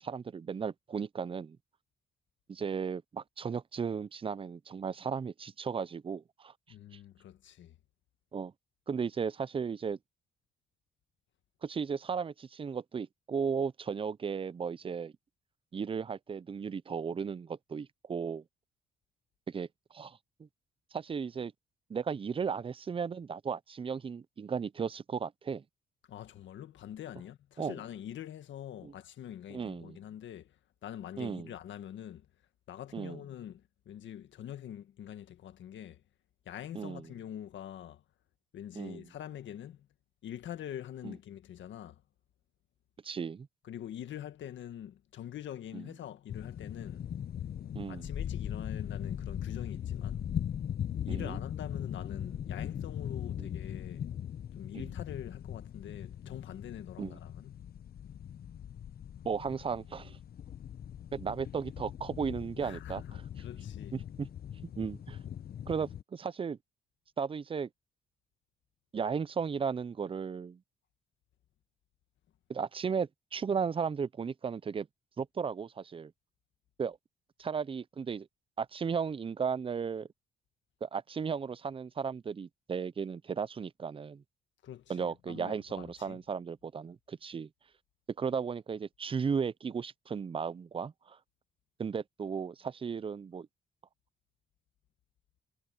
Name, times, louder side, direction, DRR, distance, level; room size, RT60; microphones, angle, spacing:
voice 1, 0.0-1.6 2.5-6.5 8.3-8.5 8.9-10.0 11.6-15.1 15.7-18.4 19.5-19.7 19.9-20.5 20.9-21.5 21.9-25.6 27.6-27.8 28.8-28.9 29.5-30.0 31.2-31.5 32.9-33.2 36.7-37.0 38.8-39.1 41.0-41.1 43.0-43.5 45.7-45.8 47.7-48.1 51.1-51.4 53.4-53.5 54.7-54.9 57.0-57.2 59.2-60.2 61.1-63.2 63.9-64.3 64.8-65.2 65.7-66.6 67.2-67.7 68.9-70.6 72.5-74.9 75.2-76.1 76.8-77.0 77.4-78.3 78.6-80.1 80.8-84.2 84.9-87.5 88.2-91.2 91.8-93.5, right 6 dB, 25° right, 0.5 m, -35 dB
voice 2, 6.7-7.8 26.1-32.3 32.7-36.0 36.5-38.0 38.5-39.9 40.2-42.0 43.6-47.1 47.9-50.3 51.0-54.0 54.5-57.7 62.6-64.0 84.6-86.2, left 10 dB, 70° left, 1.7 m, -45 dB
sound 1, 46.3-66.0, left 9 dB, 50° left, 0.8 m, -40 dB
cardioid pair, 90°, 20 cm